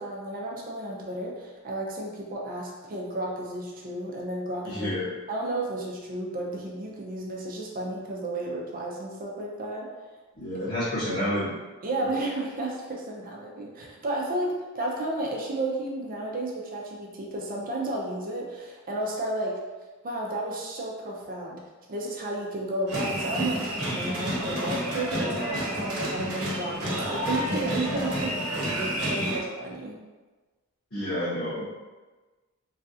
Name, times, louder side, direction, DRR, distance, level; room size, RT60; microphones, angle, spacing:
voice 1, 0.0-4.9 5.3-9.9 10.5-10.7 11.1-11.2 11.8-19.6 20.0-21.6 21.9-30.0, right 1 dB, 40° right, -2 dB, 0.5 m, -32 dB
voice 2, 4.6-5.1 10.3-11.5 24.1-24.2 30.9-31.8, left 1 dB, 65° left, -14 dB, 1.3 m, -30 dB
sound 1, 22.9-29.4, right 1 dB, 85° right, 0.9 m, -29 dB
3.1 x 2.4 x 2.7 m, 1.3 s
head